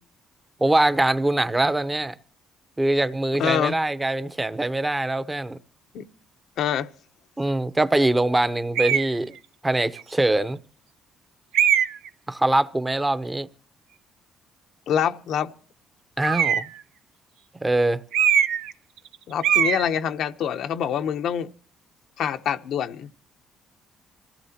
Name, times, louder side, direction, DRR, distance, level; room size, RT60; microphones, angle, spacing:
voice 1, 0.6-2.1 2.8-5.6 7.4-9.3 9.6-10.6 12.3-13.5 16.2-16.7 17.6-18.0, right 2 dB, 15° right, 0.9 m, -23 dB
voice 2, 3.4-3.7 5.9-6.0 6.6-6.9 14.9-15.5 19.3-21.5 22.2-23.1, left 9 dB, 70° left, 0.9 m, -25 dB
sound 1, 8.7-9.1 10.0-10.1 11.5-12.1 16.2-16.8 18.1-18.7 19.0-19.1 19.4-19.8, right 9 dB, 85° right, 0.7 m, -21 dB
27.0 x 16.0 x 2.9 m
cardioid pair, 85°, 0 cm